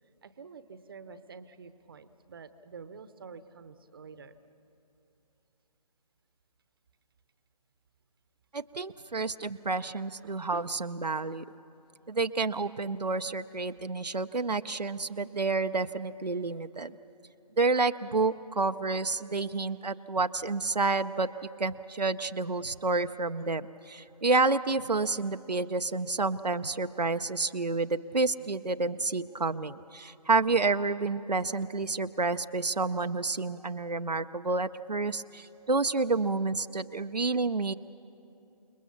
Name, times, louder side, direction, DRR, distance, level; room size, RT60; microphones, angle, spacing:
voice 1, 0.2-4.4 10.2-10.7, right 5 dB, 35° right, 12 dB, 0.9 m, -48 dB
voice 2, 8.5-11.4 12.1-16.9 17.6-21.3 21.6-37.7, right 3 dB, 85° right, 9 dB, 0.7 m, -29 dB
28.5 x 20.5 x 7.0 m, 2.9 s
figure-of-eight pair, 150°, 20 cm